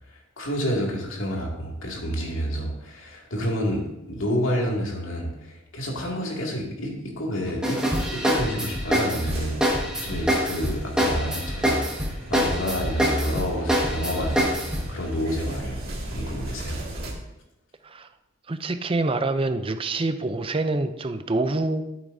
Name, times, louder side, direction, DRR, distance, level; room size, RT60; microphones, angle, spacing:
voice 1, 0.1-3.8 4.1-7.8 8.1-14.5 14.9-15.8 16.1-16.8, equal, 80° left, -2 dB, 2.3 m, -29 dB
sound 1, 7.6-14.9, equal, 5° right, 1.6 m, -25 dB
sound 2, 9.3-17.1, right 1 dB, 50° right, 2.2 m, -37 dB
voice 2, 18.5-21.9, right 2 dB, 25° right, 10 dB, 0.5 m, -26 dB
12.0 x 8.3 x 2.7 m, 0.94 s
head